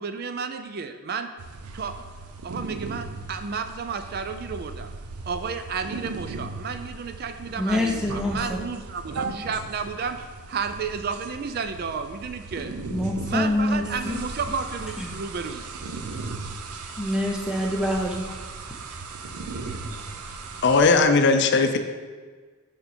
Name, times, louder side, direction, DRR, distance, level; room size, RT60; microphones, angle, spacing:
voice 1, 0.0-1.3 1.7-1.9 2.4-4.9 5.3-10.2 10.5-12.7 13.2-15.7, right 5 dB, 45° right, 8 dB, 0.3 m, -32 dB
sound 1, 1.4-21.1, right 3 dB, 85° right, 0.6 m, -37 dB
voice 2, 7.6-8.6 12.9-14.2 15.0-15.1 17.0-18.2, left 1 dB, 5° right, 0 dB, 0.7 m, -26 dB
voice 3, 20.6-21.8, left 4 dB, 50° left, 7 dB, 0.5 m, -18 dB
6.9 x 5.1 x 4.3 m, 1.5 s
head